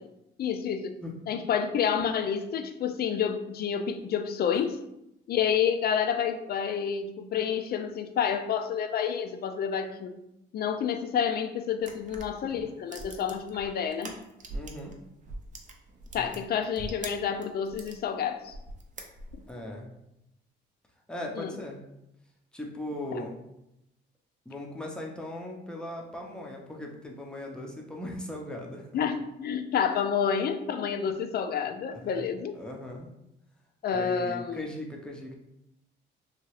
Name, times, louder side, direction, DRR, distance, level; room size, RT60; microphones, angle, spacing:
voice 1, 0.4-1.0 1.3-4.8 5.3-10.1 10.5-14.1 16.1-18.5 19.3-19.4 21.4-21.5 23.1-23.2 28.9-32.6 33.8-34.7, left 7 dB, 50° left, 8 dB, 0.4 m, -29 dB
sound 1, 11.8-14.9 15.2-18.0 18.5-19.6, right 2 dB, 40° right, 0.5 m, -42 dB
voice 2, 14.5-14.9 16.2-16.4 19.5-19.9 21.1-21.8 22.5-23.4 24.5-28.9 31.9-32.3 32.5-33.1 33.9-35.4, left 1 dB, 5° left, -1 dB, 0.6 m, -38 dB
2.8 x 2.3 x 3.1 m, 0.85 s
cardioid pair, 90°, 20 cm